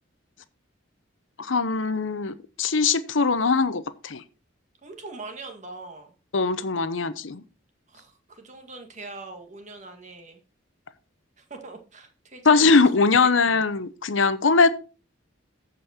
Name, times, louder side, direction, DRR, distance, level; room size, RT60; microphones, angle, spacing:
voice 1, 1.4-4.2 6.3-7.4 12.4-14.7, left 4 dB, 75° left, 0.9 m, -21 dB
voice 2, 4.8-6.1 7.9-10.4 11.4-12.8 13.5-13.7, right 3 dB, 40° right, 2.0 m, -42 dB
14.5 x 5.4 x 4.3 m
head